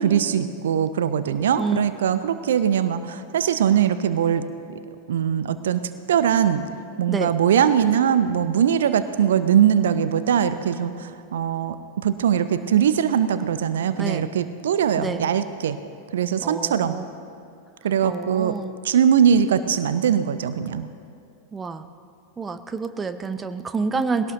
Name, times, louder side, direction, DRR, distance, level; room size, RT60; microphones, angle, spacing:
voice 1, 0.0-4.4 5.1-5.8 6.1-6.6 7.0-11.8 12.0-15.8 16.1-17.0 17.8-18.5 18.8-20.9, right 8 dB, 60° right, 12 dB, 0.6 m, -21 dB
voice 2, 14.0-14.3 15.0-15.2 16.4-17.1 18.0-18.7 21.5-21.9 22.4-24.3, right 4 dB, 15° right, 10 dB, 0.6 m, -28 dB
20.5 x 17.5 x 3.0 m, 2.4 s
figure-of-eight pair, 90°, 0 cm